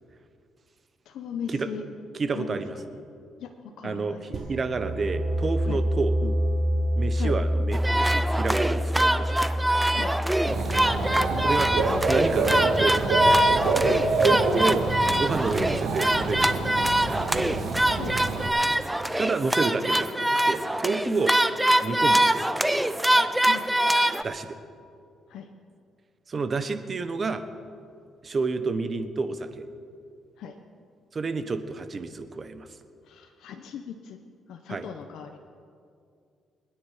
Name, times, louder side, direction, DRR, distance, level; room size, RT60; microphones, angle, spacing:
voice 1, 1.1-1.8 2.3-2.6 3.4-4.2 5.7-5.8 7.1-7.4 9.9-10.2 11.3-11.6 13.8-14.1 17.9-18.2 21.1-21.2 23.5-23.7 25.3-25.5 30.4-30.5 33.0-34.2 34.5-35.4, left 7 dB, 80° left, 5 dB, 1.0 m, -38 dB
voice 2, 2.1-2.8 3.8-6.4 7.0-9.4 11.0-11.2 11.4-13.0 14.2-14.8 15.2-17.2 19.2-21.3 21.8-22.4 24.2-24.6 26.3-27.4 28.2-29.6 31.1-32.7 34.7-34.9, right 4 dB, 40° right, 9 dB, 1.1 m, -29 dB
sound 1, 4.3-13.9, equal, 55° right, 1.3 m, -28 dB
sound 2, 7.7-24.2, right 1 dB, 5° right, 0.6 m, -24 dB
Dog / Bird, 10.5-18.5, right 3 dB, 85° right, 2.1 m, -27 dB
25.0 x 9.8 x 5.0 m, 2.4 s
cardioid pair, 90°, 0 cm